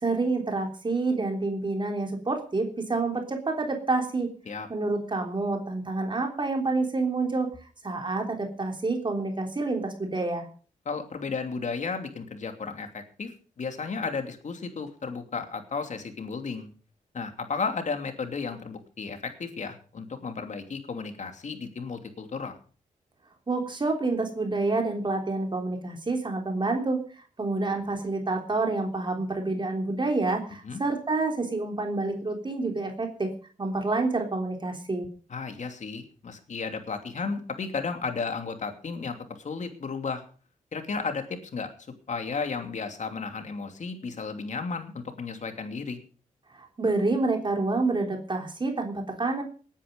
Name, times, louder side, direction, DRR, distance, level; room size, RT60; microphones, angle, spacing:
voice 1, 0.0-4.3 4.7-10.5 23.5-27.0 27.4-33.3 33.6-35.1 46.5-49.4, right 3 dB, 35° right, 3 dB, 3.4 m, -28 dB
voice 2, 10.8-13.3 13.6-16.7 17.1-22.6 30.6-30.8 35.3-40.2 40.7-41.7 42.1-46.0, left 4 dB, 60° left, 6 dB, 2.8 m, -33 dB
19.0 x 10.0 x 5.3 m, 0.41 s
cardioid pair, 80°, 14 cm